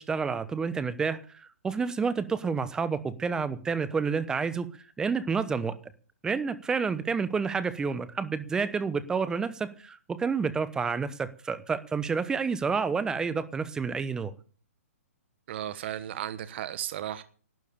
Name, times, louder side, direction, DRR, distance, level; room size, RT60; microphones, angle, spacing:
voice 1, 0.0-4.7 5.0-5.8 6.2-14.3, right 5 dB, 10° right, 14 dB, 0.9 m, -29 dB
voice 2, 15.5-17.2, right 11 dB, 45° right, 13 dB, 1.2 m, -35 dB
12.0 x 9.1 x 8.7 m, 0.41 s
hypercardioid pair, 150°, 8 cm